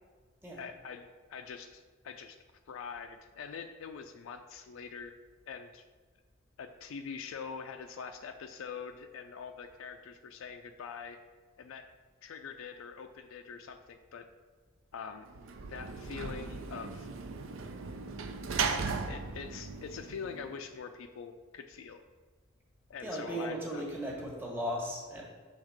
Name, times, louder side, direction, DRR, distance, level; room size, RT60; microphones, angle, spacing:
voice 1, 0.6-2.4 2.7-5.1 5.5-5.8 6.6-11.2 11.6-11.9 12.2-14.3 14.9-15.3 15.7-17.1 19.1-22.0 22.9-23.8, left 6 dB, 70° left, 6 dB, 0.4 m, -44 dB
Sliding door / Slam, 15.3-20.7, right 5 dB, 70° right, 0.5 m, -37 dB
voice 2, 23.0-25.2, equal, 10° right, -4 dB, 1.3 m, -36 dB
6.4 x 3.5 x 5.0 m, 1.4 s
head